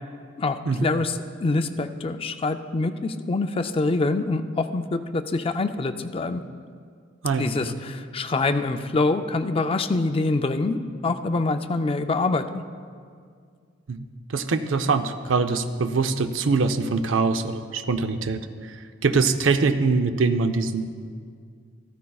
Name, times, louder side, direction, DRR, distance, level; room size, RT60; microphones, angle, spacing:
voice 1, 0.4-6.4 7.4-12.6, left 3 dB, 30° left, 8 dB, 0.4 m, -25 dB
voice 2, 13.9-20.9, right 4 dB, 80° right, 9 dB, 0.5 m, -23 dB
14.0 x 13.5 x 2.3 m, 2.1 s
head